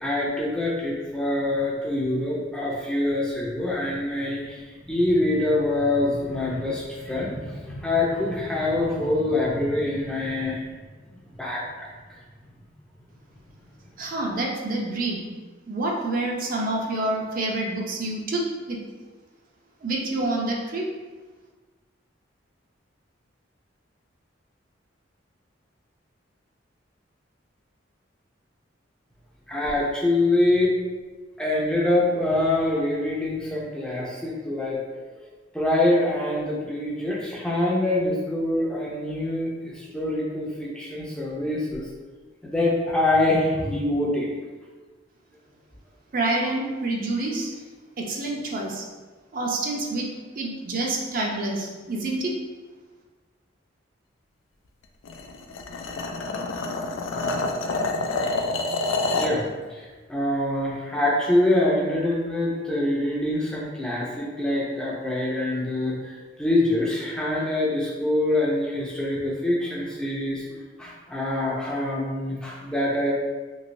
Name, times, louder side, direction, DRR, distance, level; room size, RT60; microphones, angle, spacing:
voice 1, 0.0-10.6 11.4-11.6 12.1-12.2 29.5-30.7 31.4-34.8 35.2-35.3 35.5-41.9 42.4-44.3 59.1-70.4 70.8-73.1, left 1 dB, 5° left, -5 dB, 0.5 m, -25 dB
voice 2, 14.0-15.3 15.7-18.8 19.8-20.9 46.1-47.5 48.0-48.8 49.3-50.1 50.4-52.3, right 2 dB, 45° right, -1 dB, 0.5 m, -27 dB
sound 1, 55.0-59.4, left 2 dB, 85° left, 0.3 m, -27 dB
3.1 x 2.9 x 2.6 m, 1.3 s
head